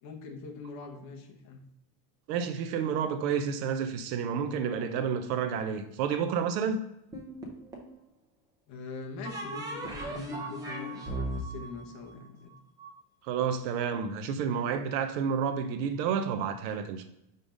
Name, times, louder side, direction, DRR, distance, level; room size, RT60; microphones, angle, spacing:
voice 1, 0.0-1.6 8.7-12.5, left 3 dB, 35° left, 0.9 m, -43 dB
voice 2, 2.3-6.8 13.3-17.0, right 7 dB, 70° right, 0.7 m, -30 dB
sound 1, 7.1-8.0 9.2-12.9, right 1 dB, 10° right, 0.4 m, -37 dB
5.2 x 3.8 x 5.1 m
cardioid pair, 175°, 49 cm